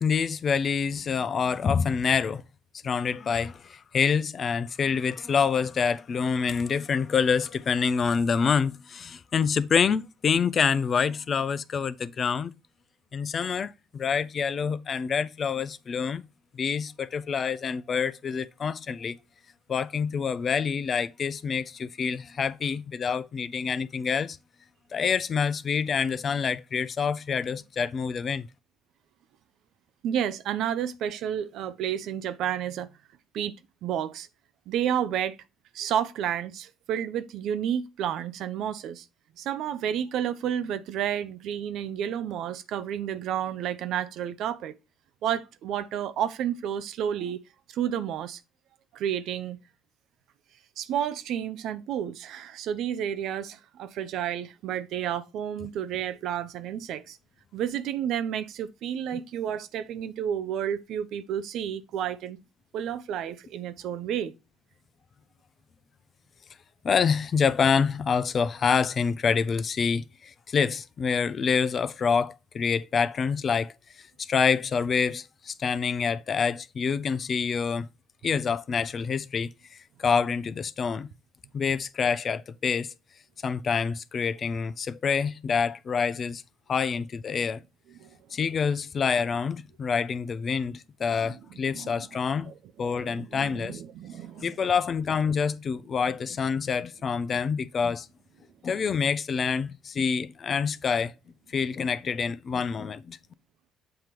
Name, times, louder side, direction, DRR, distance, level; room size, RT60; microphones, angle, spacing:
voice 1, 0.0-2.4 2.8-12.5 13.1-16.3 16.5-19.2 19.7-24.4 24.9-28.5 66.8-77.9 78.2-81.1 81.5-82.9 83.4-86.4 86.7-87.6 88.3-92.5 92.8-93.8 94.4-98.1 98.6-101.1 101.5-103.2, left 6 dB, 45° left, 0.5 m, -27 dB
voice 2, 30.0-32.9 33.3-33.6 33.8-34.3 34.7-35.4 35.7-39.1 39.4-44.7 45.2-47.4 47.7-48.4 48.9-49.6 50.8-57.2 57.5-62.4 62.7-64.3 88.0-88.1 91.1-91.4 91.7-92.1 92.4-94.5, right 9 dB, 65° right, 0.6 m, -31 dB
7.7 x 2.9 x 5.1 m
hypercardioid pair, 60°, 0 cm